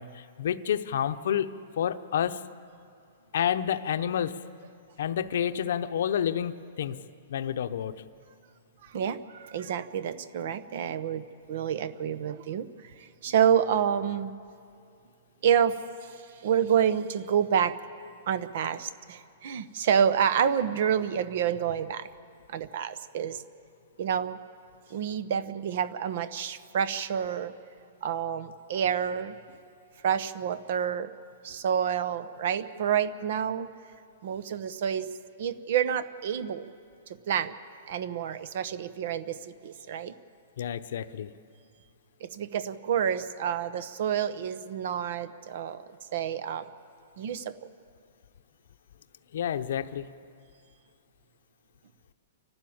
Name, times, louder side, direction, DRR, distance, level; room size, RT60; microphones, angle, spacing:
voice 1, 0.0-1.5 1.8-2.4 3.3-4.4 5.0-7.0 7.3-8.0 40.6-41.3 49.3-50.1, left 9 dB, 65° left, 11 dB, 0.8 m, -29 dB
voice 2, 8.8-12.7 13.0-14.3 15.4-17.7 18.3-22.1 22.5-23.4 24.0-24.4 24.9-27.5 28.0-29.4 30.0-31.1 31.4-33.7 34.2-35.1 35.4-36.7 37.3-37.5 37.9-40.1 42.2-45.8 46.1-46.7 47.2-47.7, right 8 dB, 55° right, 14 dB, 0.9 m, -28 dB
29.0 x 12.5 x 8.7 m, 2.4 s
hypercardioid pair, 160°, 0 cm